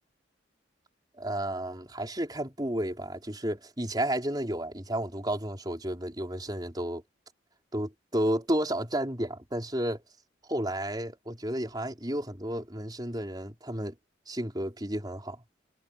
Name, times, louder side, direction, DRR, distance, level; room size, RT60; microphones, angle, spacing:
voice 1, 1.2-7.0 7.7-10.0 10.5-14.0 14.3-15.4, right 1 dB, 20° right, 4.8 m, -32 dB
head